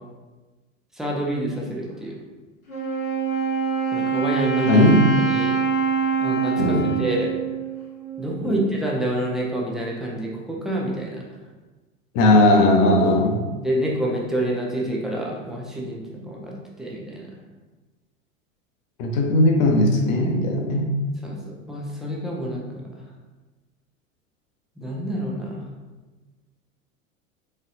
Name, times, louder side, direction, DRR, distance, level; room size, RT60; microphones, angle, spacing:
voice 1, 0.9-2.2 3.9-4.8 5.2-5.6 6.2-7.3 8.2-11.2 13.6-17.3 21.2-21.4 21.7-22.8 24.8-25.6, right 1 dB, ahead, -3 dB, 0.3 m, -28 dB
Wind instrument woodwind instrument, 2.7-8.4, right 6 dB, 90° left, 1.3 m, -24 dB
voice 2, 4.6-5.0 6.6-7.0 8.4-8.6 12.1-13.4 19.0-20.9, left 1 dB, 40° left, 2 dB, 0.8 m, -18 dB
4.2 x 3.8 x 2.5 m, 1.2 s
figure-of-eight pair, 80°, 41 cm